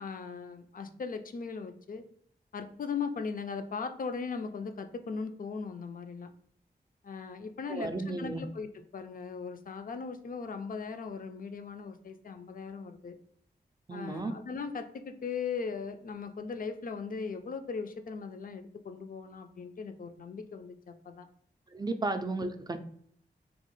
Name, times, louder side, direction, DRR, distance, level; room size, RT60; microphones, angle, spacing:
voice 1, 0.0-2.0 2.5-6.3 7.0-13.2 13.9-21.3 22.0-22.1, left 5 dB, 50° left, 8 dB, 0.4 m, -38 dB
voice 2, 7.7-8.4 13.9-14.3 21.7-22.8, right 2 dB, 20° right, 7 dB, 0.4 m, -33 dB
3.0 x 2.0 x 3.0 m, 0.63 s
cardioid pair, 45°, 18 cm